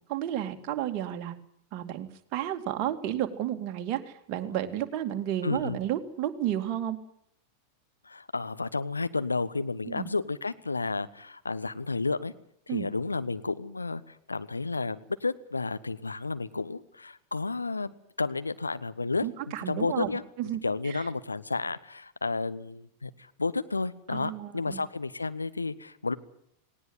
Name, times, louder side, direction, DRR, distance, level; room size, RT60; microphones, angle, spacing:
voice 1, 0.1-1.4 1.7-4.0 4.3-7.0 9.9-10.1 12.7-12.9 19.2-21.0 24.1-24.8, right 11 dB, 40° right, 5 dB, 2.3 m, -32 dB
voice 2, 5.4-5.8 8.0-12.3 12.7-20.2 20.6-26.1, left 3 dB, 80° left, 12 dB, 1.1 m, -32 dB
19.0 x 18.5 x 9.5 m, 0.69 s
figure-of-eight pair, 90°, 0 cm